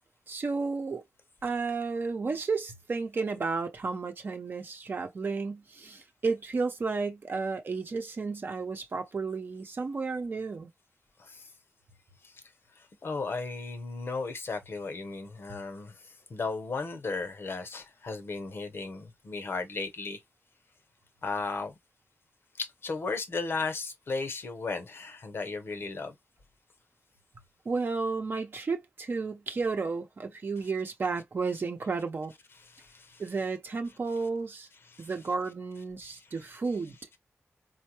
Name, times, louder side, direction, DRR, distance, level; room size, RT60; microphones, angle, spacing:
voice 1, 0.3-1.0 1.4-10.7 27.7-32.3 33.2-34.7 35.0-37.0, right 4 dB, 45° right, 0.8 m, -32 dB
voice 2, 11.2-11.5 12.2-12.4 12.8-20.2 21.2-21.7 22.6-26.1 30.6-30.7 32.6-33.2 34.8-35.1 36.0-36.6, left 4 dB, 50° left, 0.9 m, -36 dB
4.5 x 2.1 x 2.9 m
wide cardioid pair, 170°, 5 cm